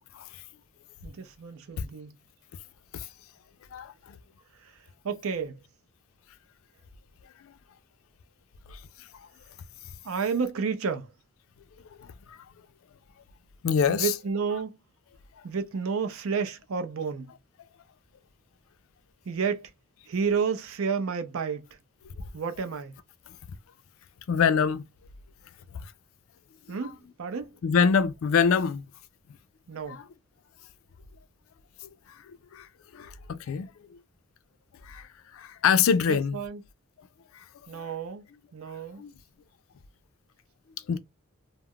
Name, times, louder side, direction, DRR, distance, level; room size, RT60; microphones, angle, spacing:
voice 1, 1.0-2.1 4.6-4.7 5.0-5.6 10.0-11.1 13.9-14.8 15.4-17.3 19.3-19.7 20.1-21.7 22.3-22.9 26.7-27.5 29.7-30.0 36.1-36.6 37.7-38.3 38.5-39.0, right 5 dB, 85° right, 0.5 m, -31 dB
voice 2, 3.7-4.2 7.4-7.5 8.7-9.3 9.8-9.9 12.0-12.4 13.6-14.1 15.4-15.5 24.3-24.9 25.7-25.9 26.7-26.8 27.6-28.9 29.9-30.1 32.1-32.7 32.9-34.0 34.8-36.4 37.0-37.1 37.3-37.4 37.8-37.9 39.0-39.1 40.9-41.0, left 6 dB, 80° left, 0.4 m, -26 dB
2.3 x 2.0 x 3.5 m
head